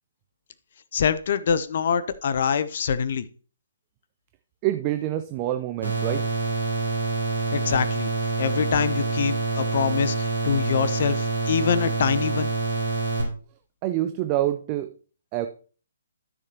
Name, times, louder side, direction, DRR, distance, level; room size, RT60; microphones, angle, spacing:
voice 1, 0.9-3.3 7.5-8.1 8.4-12.5, left 7 dB, 45° left, 14 dB, 0.5 m, -24 dB
voice 2, 4.6-6.2 13.8-14.9 15.3-15.5, right 13 dB, 25° right, 9 dB, 0.5 m, -26 dB
sound 1, 5.8-13.2, right 3 dB, 80° right, 4.2 m, -26 dB
13.0 x 6.5 x 2.9 m, 0.40 s
figure-of-eight pair, 135°, 0 cm